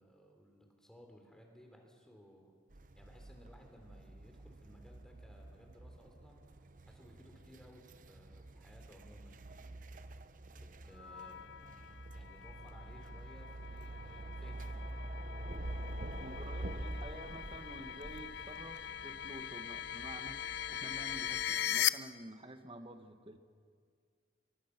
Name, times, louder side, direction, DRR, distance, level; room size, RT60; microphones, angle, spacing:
voice 1, 0.0-2.6 3.0-6.5 6.9-10.0 10.6-11.6 12.1-15.4 16.0-16.7, equal, 5° left, 2 dB, 3.5 m, -59 dB
sound 1, 2.7-21.4, right 1 dB, 45° right, 0.9 m, -47 dB
sound 2, 11.0-21.9, left 11 dB, 70° left, 0.5 m, -40 dB
voice 2, 16.2-23.4, right 1 dB, 30° right, 8 dB, 1.4 m, -50 dB
27.0 x 23.0 x 6.0 m, 2.1 s
head